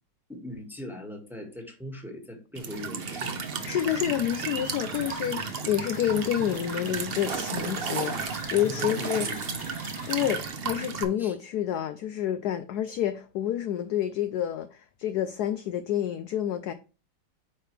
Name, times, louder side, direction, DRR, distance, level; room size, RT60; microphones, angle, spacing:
voice 1, 0.3-3.4 6.4-6.5 8.6-9.5 10.2-10.4 11.2-11.4, equal, ahead, 1.4 m, -40 dB
Walk footsteps / Chirp tweet / Stream, 2.6-11.0, right 5 dB, 55° right, 0.6 m, -33 dB
sound 1, 3.4-10.5, left 2 dB, 50° left, 2.5 m, -46 dB
voice 2, 3.7-9.3 10.1-16.7, left 11 dB, 70° left, 0.9 m, -29 dB
8.8 x 4.9 x 3.2 m
omnidirectional pair, 2.1 m